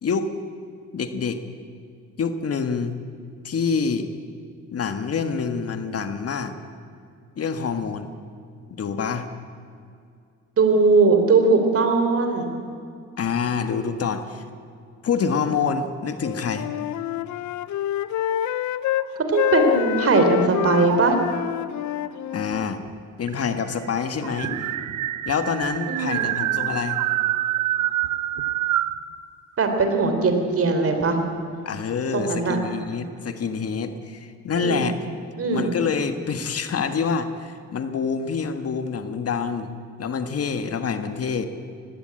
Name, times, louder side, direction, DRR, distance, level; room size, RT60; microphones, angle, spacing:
voice 1, 0.0-0.4 0.9-1.4 2.2-3.0 3.4-4.1 4.7-6.6 7.4-8.1 8.7-9.3 13.2-14.4 15.0-16.7 22.3-22.8 23.2-24.5 25.2-27.0 31.6-35.0 35.5-41.5, left 5 dB, 50° left, 9 dB, 1.6 m, -26 dB
voice 2, 10.6-12.5 19.3-21.2 25.9-26.3 29.6-31.2 32.1-32.6 34.6-34.9 35.4-35.7, right 4 dB, 50° right, 6 dB, 3.6 m, -20 dB
Wind instrument woodwind instrument, 16.2-19.1 19.3-22.7, left 13 dB, 75° left, 0.7 m, -26 dB
sound 1, 18.9-20.4 20.9-21.5 22.5-22.6 22.9-23.0 23.3-29.0, right 14 dB, 75° right, 0.8 m, -27 dB
19.5 x 15.5 x 8.8 m, 2.4 s
cardioid pair, 90°, 30 cm